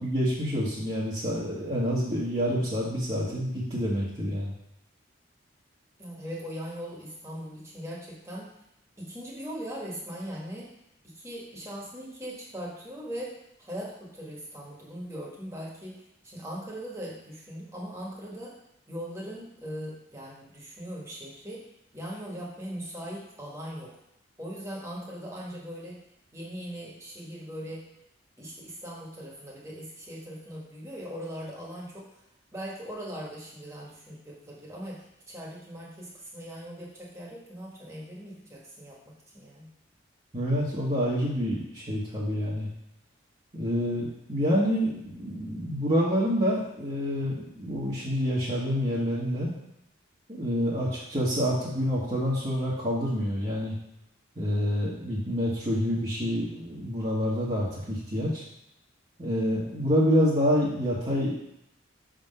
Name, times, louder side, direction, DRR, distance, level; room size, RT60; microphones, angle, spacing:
voice 1, 0.0-4.5 40.3-42.7 43.5-49.5 50.3-53.7 54.4-58.4 59.2-61.5, equal, 30° right, -7 dB, 1.2 m, -27 dB
voice 2, 6.0-8.5 9.0-10.7 11.0-18.6 18.9-24.0 24.4-26.0 26.3-27.9 28.4-32.2 32.5-39.0 39.3-39.7, equal, 15° right, -4 dB, 1.4 m, -40 dB
6.0 x 3.8 x 5.4 m, 0.80 s
head